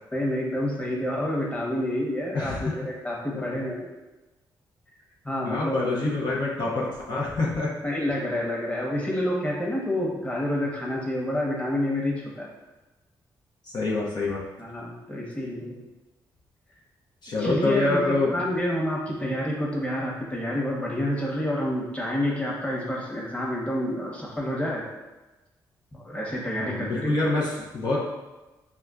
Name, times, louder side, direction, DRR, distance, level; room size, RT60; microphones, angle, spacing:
voice 1, 0.1-3.9 5.2-5.8 7.8-12.5 14.6-15.8 17.4-24.8 25.9-27.3, left 1 dB, 15° left, -3 dB, 1.1 m, -28 dB
voice 2, 2.3-2.7 3.3-3.4 5.4-7.7 13.6-14.4 17.2-18.3 26.6-28.1, left 3 dB, 55° left, -5 dB, 0.8 m, -26 dB
5.0 x 2.3 x 2.4 m, 1.1 s
supercardioid pair, 55°, 9 cm